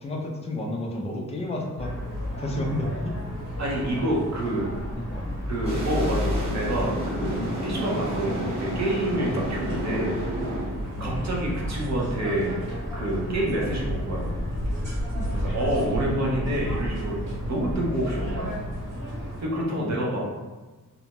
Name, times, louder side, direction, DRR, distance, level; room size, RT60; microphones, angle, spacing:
voice 1, 0.0-1.9 2.4-3.2 5.1-5.3 9.2-9.4 11.0-11.2 15.1-15.4 19.8-20.0, left 1 dB, 20° left, 0 dB, 0.4 m, -31 dB
sound 1, 1.8-19.4, equal, 75° right, 1.3 m, -32 dB
voice 2, 3.6-4.7 5.5-10.4 11.0-12.7 12.9-14.3 15.3-17.2 17.5-18.6 19.4-20.3, right 1 dB, 55° right, -3 dB, 0.8 m, -28 dB
sound 2, 5.6-10.7, equal, 20° right, 0.9 m, -31 dB
2.5 x 2.2 x 2.9 m, 1.3 s
wide cardioid pair, 155°, 32 cm